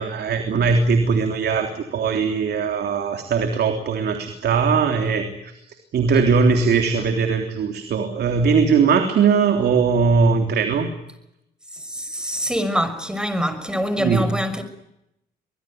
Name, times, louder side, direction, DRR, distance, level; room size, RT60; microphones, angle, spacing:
voice 1, 0.0-10.9 14.0-14.2, right 5 dB, 65° right, 3.4 m, -20 dB
voice 2, 11.7-14.6, equal, 5° right, 5.7 m, -25 dB
24.5 x 21.0 x 9.4 m
supercardioid pair, 70°, 19 cm